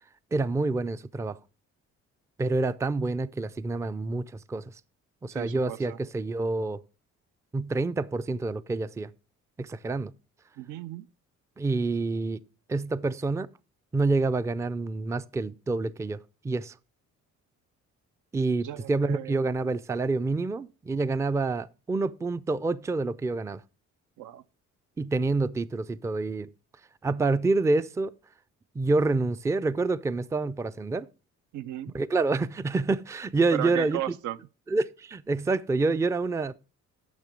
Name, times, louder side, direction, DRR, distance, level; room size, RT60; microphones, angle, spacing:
voice 1, 0.3-1.4 2.4-4.6 5.2-6.8 7.5-9.1 9.6-10.1 11.6-12.4 12.7-13.5 13.9-16.7 18.3-23.6 25.0-26.5 27.0-28.1 28.8-31.1 31.9-34.0 34.7-36.5, right 3 dB, 10° right, 0.3 m, -27 dB
voice 2, 5.3-6.0 10.6-11.1 18.6-19.4 24.2-24.4 31.5-32.0 33.5-34.4, right 13 dB, 80° right, 0.5 m, -35 dB
9.6 x 6.0 x 5.0 m
cardioid pair, 90°, 30 cm